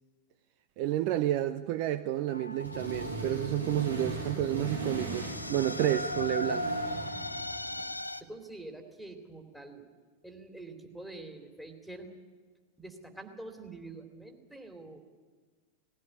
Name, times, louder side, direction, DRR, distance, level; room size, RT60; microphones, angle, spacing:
voice 1, 0.8-6.7, right 13 dB, 45° right, 0.7 m, -30 dB
sound 1, 2.3-8.2, left 1 dB, 85° left, 0.7 m, -38 dB
Accelerating revving vroom, 2.6-7.8, right 2 dB, 80° right, 3.4 m, -38 dB
voice 2, 8.2-9.9 10.2-12.1 12.8-15.0, right 2 dB, 5° right, 3.0 m, -46 dB
19.0 x 16.0 x 9.8 m
figure-of-eight pair, 90°, 0 cm